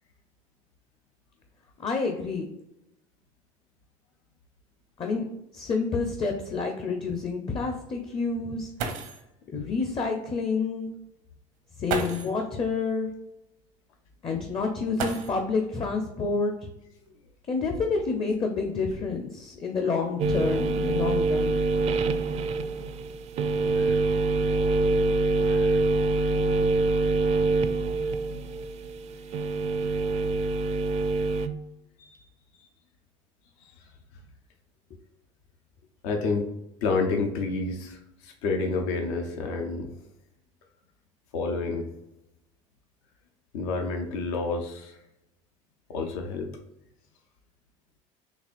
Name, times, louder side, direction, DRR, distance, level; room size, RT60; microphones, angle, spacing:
voice 1, 1.8-2.5 5.0-5.3 5.5-8.7 9.5-10.9 11.8-13.1 14.2-16.5 17.5-21.6, left 4 dB, 30° left, 4 dB, 0.6 m, -28 dB
sound 1, 4.9-5.0 5.4-5.5 6.1-6.2 8.4-8.5 8.8-9.3 10.6-10.7 11.8-12.4 14.9-15.7 17.1-17.2 17.9-19.3 20.0-20.4 20.8-21.2, right 5 dB, 80° right, 0.7 m, -35 dB
sound 2, 20.2-31.5, right 3 dB, 40° right, 0.4 m, -25 dB
voice 2, 23.8-24.1 25.5-25.8 32.1-32.2 33.6-33.7 36.0-36.5 36.8-39.9 41.3-41.9 43.5-45.0 45.9-46.5, left 3 dB, 80° left, 4 dB, 0.6 m, -29 dB
4.1 x 2.9 x 2.4 m, 0.88 s
hypercardioid pair, 75°, 17 cm